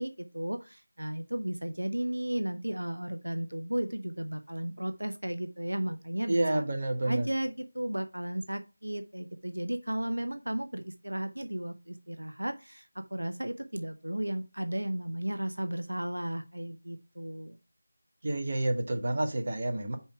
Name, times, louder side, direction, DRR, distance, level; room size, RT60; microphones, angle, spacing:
voice 1, 0.0-6.6 7.0-17.6, right 1 dB, 75° right, 0.7 m, -34 dB
voice 2, 6.3-7.3 18.2-20.0, right 1 dB, 40° right, 1.2 m, -29 dB
5.5 x 4.5 x 5.9 m
figure-of-eight pair, 165°, 0 cm